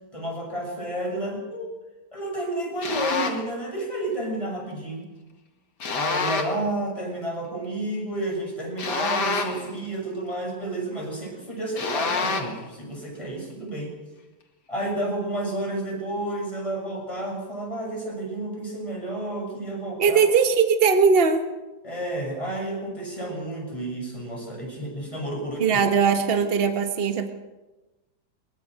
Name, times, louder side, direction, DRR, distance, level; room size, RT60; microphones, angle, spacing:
voice 1, 0.1-1.7 2.1-5.1 5.9-13.9 14.7-20.2 21.8-25.8 26.4-26.5, right 1 dB, 20° left, 0 dB, 6.8 m, -31 dB
sound 1, 2.8-3.5 5.8-6.7 8.8-9.8 11.8-12.6, left 4 dB, 80° left, 2.6 m, -27 dB
voice 2, 20.0-21.4 25.6-27.3, right 6 dB, 35° right, 6 dB, 1.6 m, -20 dB
21.5 x 21.0 x 6.5 m, 1.1 s
omnidirectional pair, 1.8 m